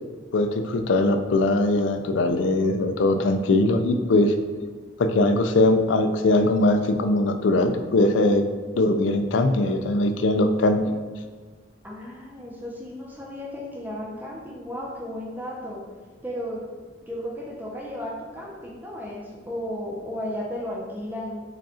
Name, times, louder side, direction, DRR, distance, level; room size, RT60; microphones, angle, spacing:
voice 1, 0.3-4.3 5.0-8.4 8.7-10.8, left 2 dB, 90° left, 7 dB, 0.4 m, -21 dB
voice 2, 11.8-15.8 16.2-16.6 17.0-21.4, left 1 dB, 10° right, -3 dB, 0.6 m, -34 dB
5.0 x 2.4 x 4.2 m, 1.4 s
head